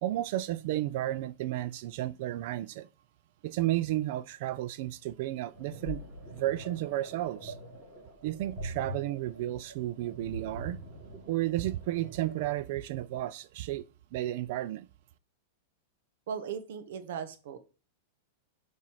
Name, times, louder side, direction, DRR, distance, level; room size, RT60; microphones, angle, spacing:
voice 1, 0.0-2.9 3.4-6.0 6.3-7.5 8.2-10.8 11.3-13.8 14.1-14.9, right 15 dB, 50° right, 0.4 m, -32 dB
sound 1, 5.5-12.5, equal, 15° right, 2.8 m, -44 dB
voice 2, 16.3-17.6, right 7 dB, 65° right, 1.2 m, -37 dB
5.4 x 4.8 x 5.7 m
supercardioid pair, 165°, 0 cm